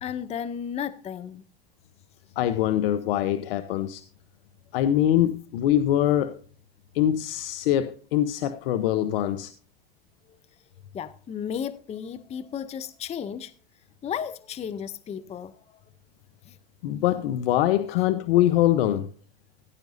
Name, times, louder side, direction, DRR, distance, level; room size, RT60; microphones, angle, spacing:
voice 1, 0.0-1.4 10.9-13.5 14.0-15.8 16.5-16.6, left 8 dB, 20° left, 0.6 m, -34 dB
voice 2, 2.4-4.0 4.7-6.3 6.9-9.5 16.8-19.1, left 12 dB, 65° left, 1.0 m, -23 dB
17.5 x 10.5 x 2.7 m
hypercardioid pair, 105°, 30 cm